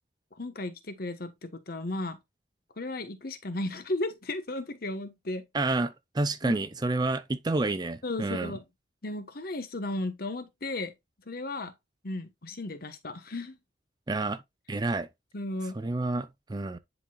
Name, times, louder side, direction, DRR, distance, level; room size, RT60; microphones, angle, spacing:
voice 1, 0.3-2.2 2.8-5.4 6.4-6.6 8.0-8.6 9.0-10.9 11.3-11.7 12.0-13.6 15.3-15.7, left 2 dB, 55° left, 1.1 m, -35 dB
voice 2, 5.5-8.5 14.1-14.4 14.7-15.1 15.8-16.8, right 2 dB, 25° right, 0.5 m, -29 dB
10.0 x 4.2 x 2.3 m
head